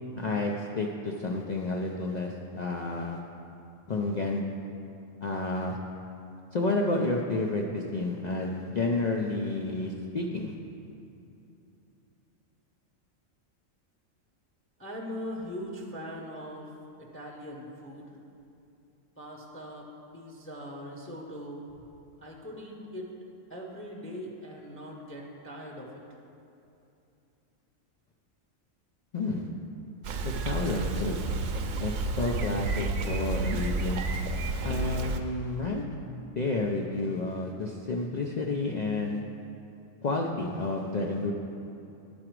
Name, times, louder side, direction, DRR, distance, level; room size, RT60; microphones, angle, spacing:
voice 1, 0.2-3.2 3.9-4.4 5.2-5.8 6.5-10.5 29.1-29.5 30.2-31.2 31.8-34.0 34.6-35.8 36.3-39.2 40.0-41.3, left 2 dB, 85° left, 0 dB, 0.3 m, -30 dB
voice 2, 14.8-16.7 17.0-18.1 19.2-21.7 22.2-23.1 23.5-26.0, equal, 15° left, -2 dB, 0.5 m, -41 dB
Bicycle, 30.0-35.2, right 3 dB, 70° right, 0.9 m, -31 dB
11.5 x 4.9 x 4.6 m, 2.8 s
omnidirectional pair, 1.4 m